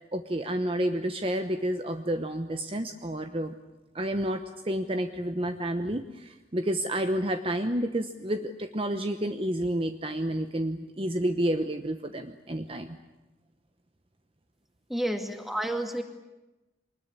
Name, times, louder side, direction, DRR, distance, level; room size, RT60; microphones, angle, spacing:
voice 1, 0.1-3.5 3.9-13.0, right 1 dB, 30° right, 7 dB, 0.9 m, -30 dB
voice 2, 14.9-16.0, right 1 dB, ahead, 5 dB, 2.2 m, -30 dB
24.0 x 20.5 x 9.9 m, 1.1 s
head